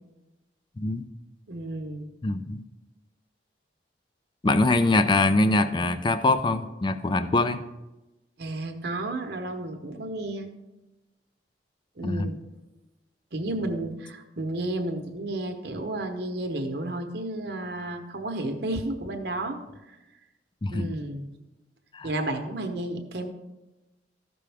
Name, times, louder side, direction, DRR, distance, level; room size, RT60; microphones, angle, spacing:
voice 1, 1.5-2.1 8.4-10.5 12.0-12.4 13.3-19.6 20.7-21.3 22.0-23.3, right 1 dB, 60° right, 5 dB, 1.0 m, -32 dB
voice 2, 2.2-2.6 4.4-7.6 12.0-12.3 20.6-20.9 21.9-22.1, left 2 dB, 25° left, 11 dB, 0.4 m, -23 dB
13.5 x 6.1 x 3.5 m, 1.0 s
head